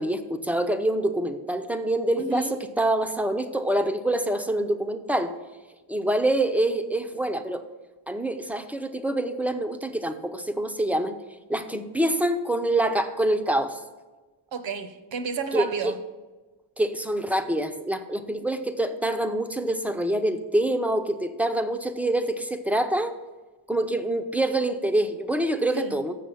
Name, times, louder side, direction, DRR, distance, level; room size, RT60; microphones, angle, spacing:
voice 1, 0.0-5.3 5.9-7.6 8.1-11.1 11.5-13.8 15.5-15.9 16.8-23.1 23.7-26.1, right 1 dB, 5° right, 8 dB, 0.5 m, -26 dB
voice 2, 2.2-2.6 14.5-16.0 25.7-26.0, right 5 dB, 65° right, 10 dB, 0.9 m, -31 dB
7.6 x 6.5 x 7.0 m, 1.2 s
wide cardioid pair, 105°, 49 cm